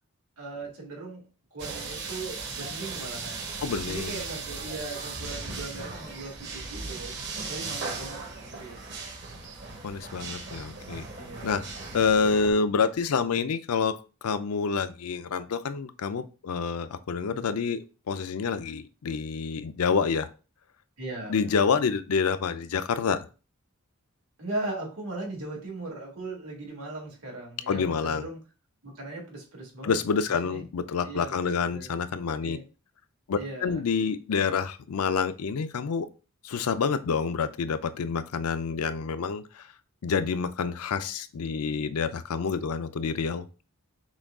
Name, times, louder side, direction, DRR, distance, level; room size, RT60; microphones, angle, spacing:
voice 1, 0.4-1.2 1.5-3.4 3.9-7.2 7.5-8.2 8.5-8.9 11.2-11.6 17.1-17.4 21.0-21.6 24.4-28.4 28.8-29.9 30.4-30.6 31.0-31.3 31.6-31.9 32.4-32.6 33.4-33.8, right 2 dB, 80° right, -1 dB, 2.0 m, -38 dB
sound 1, 1.6-12.5, right 4 dB, 50° right, 0.9 m, -37 dB
voice 2, 3.6-4.2 9.8-11.0 11.4-11.7 11.9-17.8 18.1-20.3 21.3-23.2 27.7-28.3 29.8-32.6 33.3-36.1 36.4-39.6 40.0-43.5, left 5 dB, 85° left, 11 dB, 0.5 m, -28 dB
6.1 x 2.3 x 3.5 m, 0.34 s
head